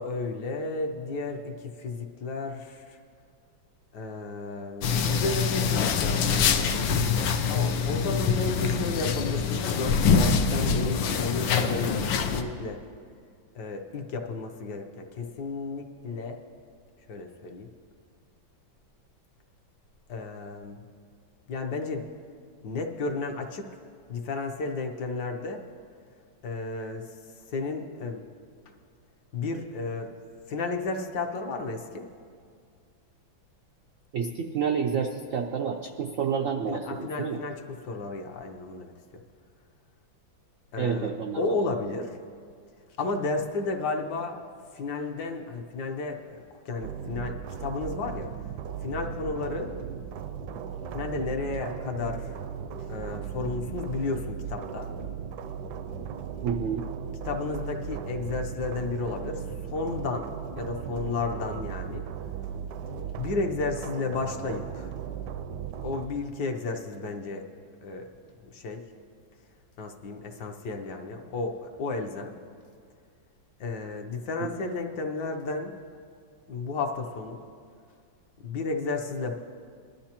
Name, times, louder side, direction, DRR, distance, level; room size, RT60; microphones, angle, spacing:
voice 1, 0.0-3.0 3.9-12.8 13.5-16.4 17.1-17.7 20.1-20.8 21.5-22.0 22.6-23.7 24.1-25.6 26.4-27.0 27.5-28.2 29.3-30.1 30.5-32.1 36.7-39.2 40.7-41.1 41.4-42.2 43.0-44.4 44.7-48.3 48.8-49.7 50.9-52.3 52.9-54.9 57.2-62.0 63.2-64.9 65.8-67.5 67.8-68.1 68.4-68.8 69.8-72.3 73.6-75.7 76.5-77.4 78.4-79.3, left 3 dB, 65° left, 3 dB, 1.3 m, -33 dB
sound 1, 4.8-12.4, left 6 dB, 85° left, 1.5 m, -25 dB
voice 2, 34.1-37.4 40.8-41.5 56.4-56.8 74.4-74.5, right 6 dB, 90° right, 3 dB, 0.7 m, -29 dB
sound 2, 46.8-66.1, right 8 dB, 75° right, 1.1 m, -37 dB
20.0 x 12.0 x 2.9 m, 2.2 s
omnidirectional pair, 2.1 m